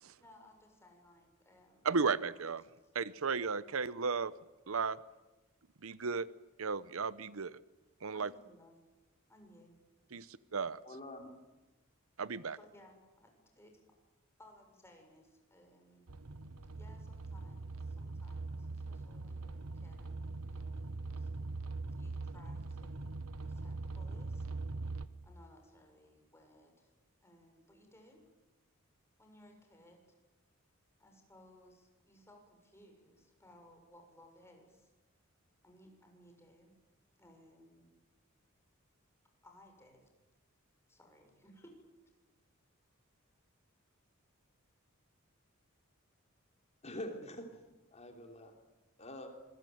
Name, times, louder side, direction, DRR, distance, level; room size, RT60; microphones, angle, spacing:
voice 1, 0.2-1.9 2.8-2.9 8.1-8.8 9.3-9.7 10.2-10.3 12.5-13.7 14.4-16.0 16.8-21.3 21.9-23.2 23.4-24.5 25.2-26.9 27.2-28.2 29.2-30.0 31.0-34.9 35.6-36.7 37.2-37.9 39.4-40.1 40.9-41.8, left 1 dB, 10° left, 3 dB, 6.8 m, -61 dB
voice 2, 1.8-2.6 2.9-4.3 4.7-5.0 5.8-6.3 6.6-7.6 8.0-8.3 10.1-10.3 10.5-10.8 12.2-12.6, right 5 dB, 70° right, 17 dB, 0.8 m, -34 dB
voice 3, 10.8-11.4 46.8-47.6 47.9-48.5 49.0-49.3, left 1 dB, 30° left, 4 dB, 3.2 m, -45 dB
sound 1, 16.1-25.1, right 3 dB, 85° right, 1.3 m, -42 dB
26.5 x 21.5 x 9.3 m, 1.1 s
head